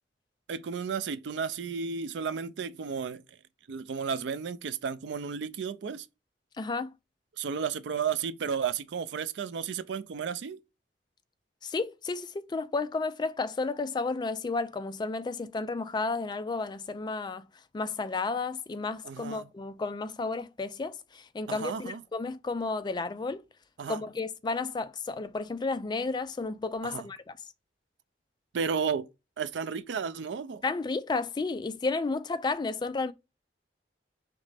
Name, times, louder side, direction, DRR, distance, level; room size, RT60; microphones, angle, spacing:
voice 1, 0.5-3.2 3.7-6.1 7.4-10.6 19.0-19.5 21.5-22.0 23.8-24.0 26.8-27.1 28.5-29.1 29.4-30.6, right 6 dB, 75° right, 0.4 m, -33 dB
voice 2, 6.6-6.9 11.6-17.5 17.7-23.4 23.9-27.4 30.6-33.1, left 3 dB, 25° left, 0.3 m, -32 dB
4.9 x 3.2 x 3.3 m
head